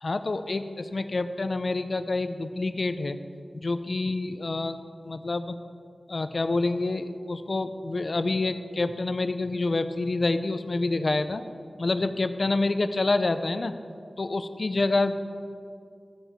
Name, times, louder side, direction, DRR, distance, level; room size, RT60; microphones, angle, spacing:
voice 1, 0.0-3.2 3.5-4.8 5.0-5.6 6.1-11.4 11.8-13.7 14.2-15.2, left 2 dB, 50° left, 10 dB, 0.5 m, -27 dB
13.5 x 7.1 x 7.3 m, 2.3 s
wide cardioid pair, 90°, 0 cm